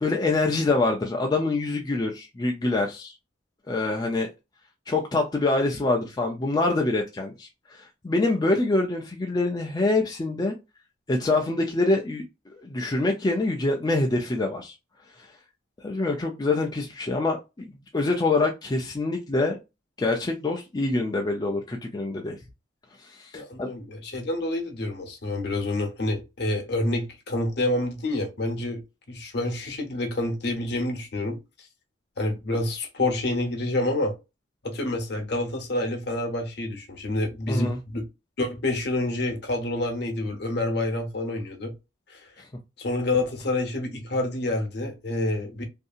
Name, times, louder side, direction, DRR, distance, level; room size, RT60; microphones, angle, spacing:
voice 1, 0.0-3.1 3.7-4.3 4.9-10.5 11.1-12.2 12.5-14.7 15.2-15.3 15.8-19.6 20.0-22.4 23.0-23.7 37.5-37.8, left 2 dB, 20° left, 0.3 m, -25 dB
voice 2, 23.3-31.7 32.2-34.2 34.6-38.1 38.4-41.7 42.1-42.3 42.8-45.6, left 2 dB, 55° left, 0.8 m, -28 dB
2.7 x 2.6 x 2.3 m
head